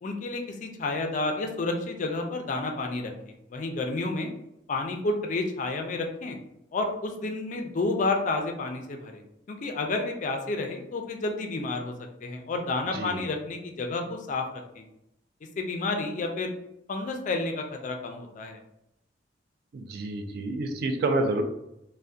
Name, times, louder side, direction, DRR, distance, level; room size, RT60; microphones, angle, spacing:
voice 1, 0.0-4.3 4.7-6.4 6.7-9.2 9.5-11.9 12.2-14.8 15.6-16.5 16.9-18.6, left 3 dB, 45° left, 4 dB, 0.3 m, -30 dB
voice 2, 19.7-21.4, right 2 dB, 60° right, 6 dB, 0.3 m, -28 dB
2.6 x 2.1 x 2.3 m, 0.82 s
head